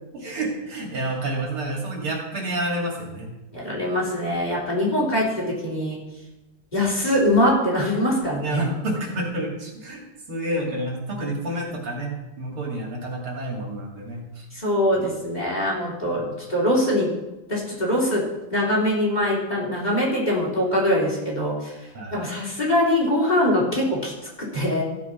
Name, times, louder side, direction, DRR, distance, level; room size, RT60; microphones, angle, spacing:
voice 1, 0.1-3.3 8.4-14.5 16.1-16.4 21.9-22.2, right 1 dB, 80° right, -1 dB, 3.6 m, -29 dB
voice 2, 3.5-6.0 6.7-8.7 14.5-17.1 17.5-18.2 18.5-21.7 22.1-24.1 24.5-24.8, left 1 dB, 20° left, -5 dB, 3.6 m, -22 dB
14.5 x 7.3 x 5.7 m, 1.0 s
omnidirectional pair, 2.3 m